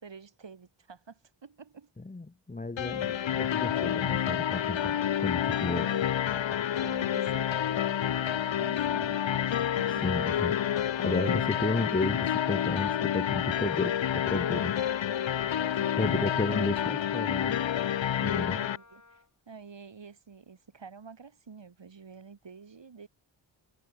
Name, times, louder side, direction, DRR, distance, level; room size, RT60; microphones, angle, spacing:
voice 1, 0.0-1.9 5.7-6.1 6.8-10.1 11.4-11.8 15.5-16.3 18.3-23.1, right 5 dB, 65° right, 5.5 m, -49 dB
voice 2, 2.0-5.9 10.0-10.6 11.0-14.8 16.0-17.6 18.2-18.6, left 2 dB, 20° left, 1.0 m, -32 dB
sound 1, 2.8-18.8, left 10 dB, 70° left, 0.9 m, -29 dB
Wind instrument woodwind instrument, 8.8-19.3, left 3 dB, 35° left, 5.7 m, -56 dB
cardioid pair, 60°, 47 cm